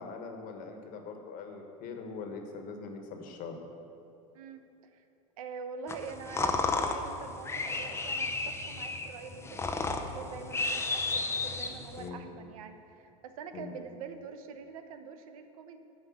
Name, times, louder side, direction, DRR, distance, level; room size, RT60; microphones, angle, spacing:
voice 1, 0.0-3.6 12.0-12.3 13.5-13.7, left 4 dB, 50° left, 4 dB, 1.4 m, -42 dB
voice 2, 4.3-5.0 5.4-15.8, right 5 dB, 85° right, 8 dB, 0.8 m, -45 dB
sound 1, 5.9-12.1, left 3 dB, 15° left, 0.7 m, -33 dB
9.7 x 5.3 x 7.3 m, 2.8 s
supercardioid pair, 105°, 18 cm